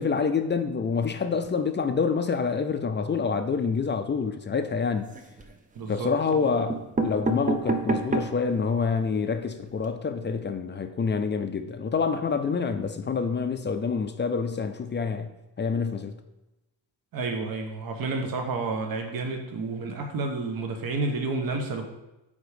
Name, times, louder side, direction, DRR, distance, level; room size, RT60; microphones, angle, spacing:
voice 1, 0.0-5.2 5.9-15.3 15.6-16.2, left 5 dB, 25° left, 0.4 m, -27 dB
sound 1, 5.0-5.6 6.3-6.4 6.7-8.5 9.0-9.1 9.3-9.4 9.7-9.9, right 3 dB, 20° right, 0.5 m, -29 dB
voice 2, 5.7-6.5 17.1-21.9, right 3 dB, 55° right, 1.2 m, -30 dB
9.2 x 3.6 x 5.1 m
cardioid pair, 155°, 42 cm